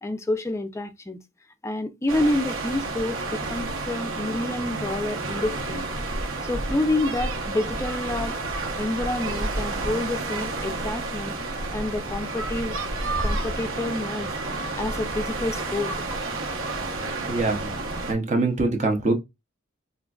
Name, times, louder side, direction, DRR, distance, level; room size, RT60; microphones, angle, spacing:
voice 1, 0.0-1.2 1.6-5.9 6.4-8.4 8.8-12.8 13.2-15.9, left 2 dB, 15° left, 0.4 m, -28 dB
sound 1, 2.1-18.1, right 2 dB, 70° right, 0.9 m, -30 dB
voice 2, 17.3-17.8 18.1-19.1, right 2 dB, 35° right, 0.6 m, -23 dB
3.6 x 2.6 x 2.3 m
head